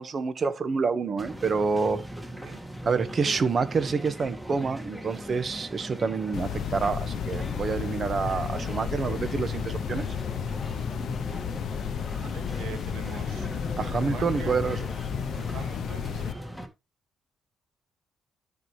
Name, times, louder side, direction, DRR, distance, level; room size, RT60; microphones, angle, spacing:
voice 1, 0.0-2.0 2.8-10.1 13.8-14.9, right 5 dB, 45° right, 1.4 m, -27 dB
sound 1, 1.2-16.7, equal, 5° right, 1.9 m, -39 dB
voice 2, 2.3-2.6 12.2-13.5 14.0-14.6 15.5-16.4, right 7 dB, 80° right, 1.8 m, -43 dB
sound 2, 6.3-16.3, left 8 dB, 70° left, 0.7 m, -32 dB
13.0 x 4.7 x 3.2 m
cardioid pair, 90°, 0 cm